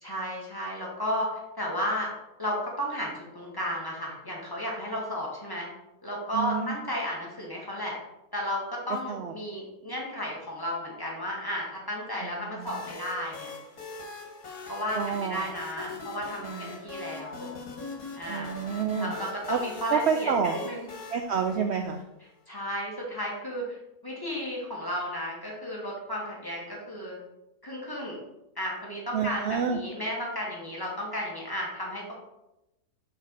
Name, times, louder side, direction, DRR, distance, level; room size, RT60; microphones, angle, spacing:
voice 1, 0.0-2.1 2.4-5.7 6.0-8.0 8.3-13.5 14.7-17.5 18.2-18.6 19.0-20.9 22.5-23.8 24.0-27.2 27.6-28.2 28.5-32.1, equal, 15° left, -4 dB, 1.7 m, -33 dB
voice 2, 6.3-6.8 9.1-9.3 12.2-12.8 14.9-15.4 16.4-16.8 18.3-19.1 19.5-19.6 19.9-20.6 21.1-22.0 29.1-29.8, right 6 dB, 75° right, 5 dB, 0.6 m, -29 dB
sound 1, 12.6-22.2, left 3 dB, 65° left, 1.8 m, -42 dB
6.1 x 4.7 x 4.6 m, 0.92 s
omnidirectional pair, 1.7 m